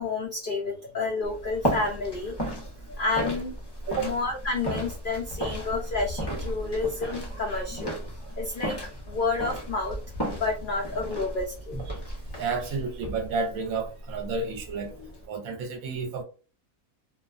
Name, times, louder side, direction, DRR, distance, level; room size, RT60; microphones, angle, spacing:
voice 1, 0.0-2.3 3.0-3.6 4.0-8.0 8.4-8.8 9.1-10.0 10.3-11.8, left 3 dB, 80° left, 0.4 m, -30 dB
sound 1, 1.2-15.3, equal, 25° left, 0.6 m, -35 dB
voice 2, 12.4-14.9 15.3-16.2, right 4 dB, 75° right, 1.1 m, -31 dB
2.6 x 2.2 x 2.4 m
omnidirectional pair, 1.5 m